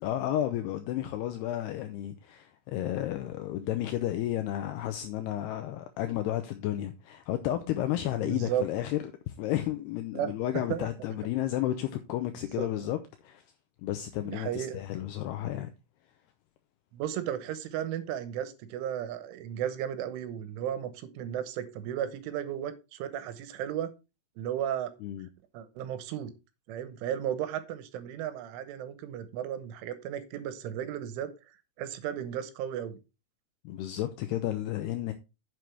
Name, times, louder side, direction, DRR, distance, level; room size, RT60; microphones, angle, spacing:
voice 1, 0.0-9.0 9.3-13.4 13.8-15.7 25.0-25.3 33.6-35.1, left 13 dB, 80° left, 2.4 m, -32 dB
voice 2, 8.3-8.7 10.1-10.3 10.7-10.9 12.3-12.7 14.3-14.8 16.9-23.9 24.4-24.9 25.5-26.3 26.7-33.0, right 10 dB, 80° right, 3.5 m, -34 dB
9.5 x 7.7 x 3.3 m
omnidirectional pair, 5.6 m